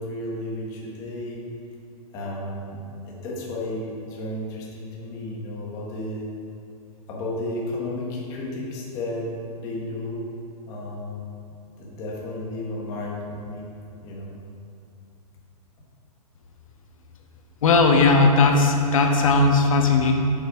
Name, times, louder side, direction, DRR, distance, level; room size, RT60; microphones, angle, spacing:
voice 1, 0.0-1.4 2.1-6.3 7.1-9.3 9.6-10.2 10.7-11.3 11.8-13.7 14.0-14.3, left 1 dB, 15° left, -4 dB, 1.2 m, -33 dB
voice 2, 17.6-20.1, left 3 dB, 60° left, 3 dB, 1.2 m, -17 dB
7.8 x 6.5 x 4.7 m, 2.8 s
hypercardioid pair, 175°, 19 cm